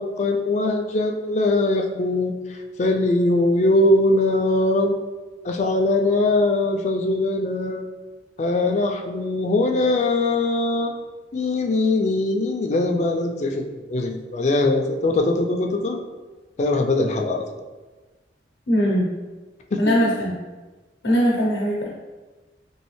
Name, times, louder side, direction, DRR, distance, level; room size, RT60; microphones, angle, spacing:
voice 1, 0.0-5.0 5.4-7.8 8.4-10.9 11.3-16.0 16.6-17.4 19.7-19.9, left 2 dB, 40° left, 3 dB, 0.3 m, -21 dB
voice 2, 18.7-19.1 19.8-20.3 21.0-21.9, equal, 80° left, -4 dB, 0.7 m, -20 dB
3.1 x 3.1 x 3.1 m, 1.2 s
head